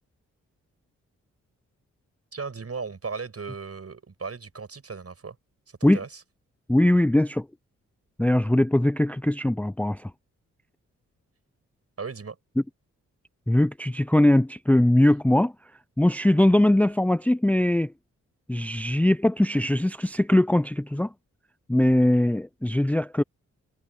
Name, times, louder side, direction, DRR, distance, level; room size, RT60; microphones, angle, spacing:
voice 1, 2.3-5.4 5.7-6.2 12.0-12.4, right 5 dB, 45° right, 6.4 m, -36 dB
voice 2, 6.7-7.5 8.2-10.1 13.5-15.5 16.0-17.9 18.5-21.1 21.7-23.2, left 1 dB, 5° left, 0.6 m, -21 dB
supercardioid pair, 45°, 32 cm